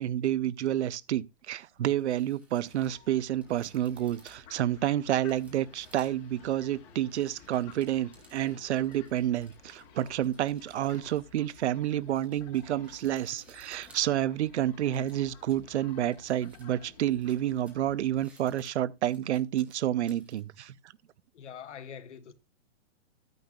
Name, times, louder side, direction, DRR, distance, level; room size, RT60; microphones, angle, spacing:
voice 1, 0.0-20.7, right 12 dB, 65° right, 0.6 m, -29 dB
sound 1, 1.3-1.4 1.7-6.4 6.9-20.4, right 2 dB, 5° right, 0.7 m, -61 dB
Fowl, 2.7-18.2, left 6 dB, 15° left, 1.1 m, -55 dB
voice 2, 21.3-22.3, left 8 dB, 75° left, 1.5 m, -44 dB
13.0 x 9.3 x 2.3 m
hypercardioid pair, 175°, 36 cm